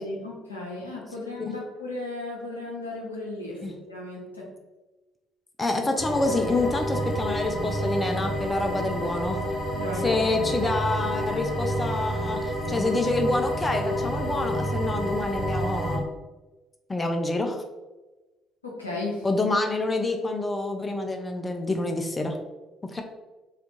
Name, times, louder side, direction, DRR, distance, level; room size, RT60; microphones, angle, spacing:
voice 1, 0.0-3.6 3.9-4.5 9.7-10.2 18.6-19.2, left 2 dB, 90° left, -4 dB, 0.5 m, -35 dB
voice 2, 5.6-9.4 10.0-16.1 16.9-17.6 19.2-22.4 22.8-23.0, left 2 dB, 25° left, 4 dB, 0.3 m, -27 dB
sound 1, 6.0-16.0, equal, 50° right, 1.0 m, -29 dB
2.4 x 2.3 x 2.9 m, 1.1 s
figure-of-eight pair, 50°, 0 cm